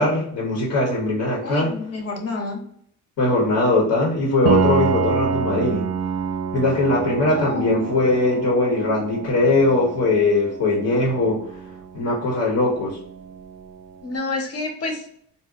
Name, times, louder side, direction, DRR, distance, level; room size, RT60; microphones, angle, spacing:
voice 1, 0.0-1.8 3.2-5.9 6.5-11.4 11.9-13.0, left 2 dB, 75° left, -2 dB, 1.2 m, -20 dB
voice 2, 1.4-2.6 7.2-7.9 14.0-15.1, left 2 dB, 55° left, 2 dB, 1.1 m, -29 dB
Piano, 4.5-14.0, right 6 dB, 55° right, 0.5 m, -28 dB
4.2 x 2.2 x 2.5 m, 0.65 s
cardioid pair, 90°, 30 cm